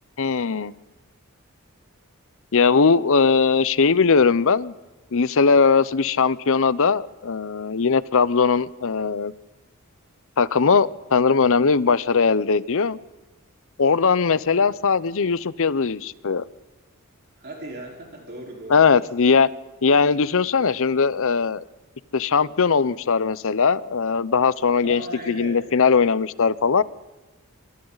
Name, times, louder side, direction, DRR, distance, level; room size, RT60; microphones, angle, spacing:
voice 1, 0.2-0.7 2.5-4.7 5.1-9.3 10.4-13.0 13.8-16.4 18.7-19.5 19.8-21.6 22.1-25.0 25.3-26.8, left 5 dB, 65° left, 18 dB, 0.7 m, -19 dB
voice 2, 17.4-18.9 24.8-25.6, right 1 dB, 50° right, -1 dB, 4.5 m, -37 dB
27.0 x 25.0 x 4.0 m, 1.2 s
head